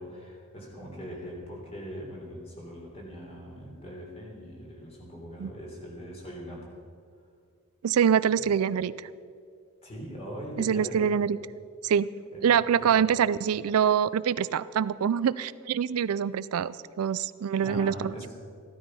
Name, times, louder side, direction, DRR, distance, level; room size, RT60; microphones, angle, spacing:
voice 1, 0.0-6.7 8.3-8.5 9.8-11.1 12.3-12.5 12.8-13.1 17.6-18.3, equal, 30° left, -2 dB, 3.5 m, -41 dB
voice 2, 7.8-8.9 10.6-11.4 11.8-12.1 12.4-18.1, right 8 dB, 85° right, 17 dB, 0.4 m, -25 dB
15.0 x 12.5 x 5.5 m, 2.2 s
head